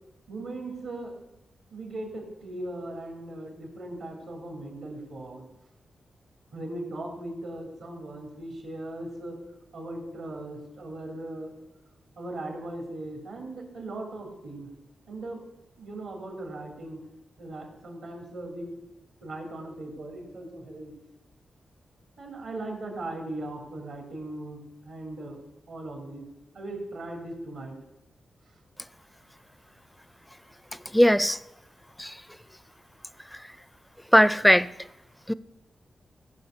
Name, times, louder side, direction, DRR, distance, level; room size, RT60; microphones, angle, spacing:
voice 1, 0.3-1.1 1.7-5.4 6.5-9.4 9.7-11.5 12.2-14.7 15.1-15.4 15.8-17.0 17.4-18.7 19.2-20.9 22.2-25.4 25.7-26.3 26.5-27.8, right 2 dB, 80° right, 2.9 m, -38 dB
voice 2, 30.9-31.4 32.0-32.2 34.1-34.7 35.3-35.4, equal, 5° left, 0.4 m, -19 dB
14.5 x 5.4 x 6.7 m
cardioid pair, 60°, 0 cm